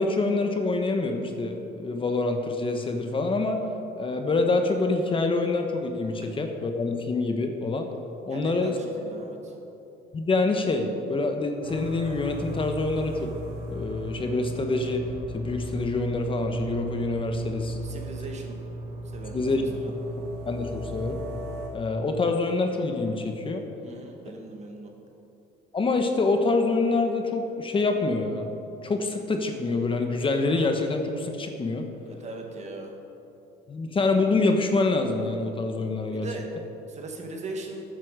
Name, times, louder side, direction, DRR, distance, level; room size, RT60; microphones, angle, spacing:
voice 1, 0.0-3.6 4.0-7.9 8.3-8.7 10.1-13.3 13.7-15.1 15.3-17.8 19.3-19.6 20.5-21.2 21.7-23.6 25.7-28.5 28.8-31.9 33.7-36.3, left 3 dB, 30° left, 5 dB, 1.1 m, -26 dB
voice 2, 8.3-9.5 17.8-18.6 19.1-19.9 23.8-24.9 32.1-32.9 36.1-36.5 36.9-37.8, right 2 dB, 45° right, 2 dB, 1.9 m, -39 dB
sound 1, 11.6-21.7, right 2 dB, 75° right, 2.5 m, -35 dB
14.0 x 9.5 x 5.0 m, 2.9 s
cardioid pair, 110°, 17 cm